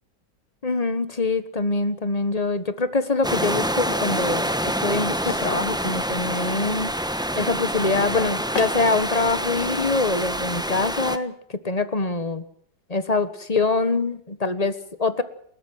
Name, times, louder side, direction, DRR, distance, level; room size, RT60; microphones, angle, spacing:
voice 1, 0.6-6.9 7.4-12.4 12.9-15.2, left 3 dB, 25° left, 12 dB, 1.3 m, -24 dB
sound 1, 3.2-11.2, equal, 5° right, 0.8 m, -27 dB
sound 2, 5.1-11.0, left 4 dB, 85° left, 3.3 m, -40 dB
29.5 x 13.5 x 8.0 m, 0.67 s
omnidirectional pair, 1.9 m